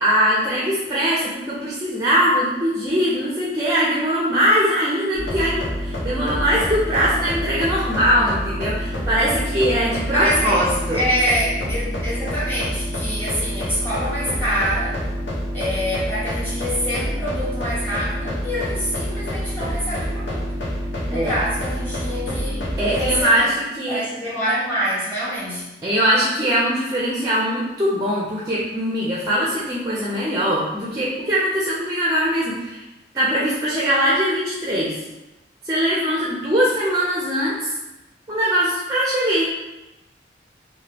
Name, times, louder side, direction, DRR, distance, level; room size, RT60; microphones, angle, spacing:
voice 1, 0.0-11.0 21.1-21.3 22.8-24.0 25.8-32.8 33.1-35.0 35.6-37.7 38.3-39.5, equal, 20° right, -5 dB, 0.4 m, -21 dB
sound 1, 5.1-23.2, equal, 85° left, 0.8 m, -27 dB
voice 2, 10.1-10.7 10.9-15.0 15.5-20.5 21.1-23.5 23.9-25.7, equal, 10° left, -10 dB, 1.2 m, -25 dB
3.4 x 2.2 x 2.9 m, 1.0 s
head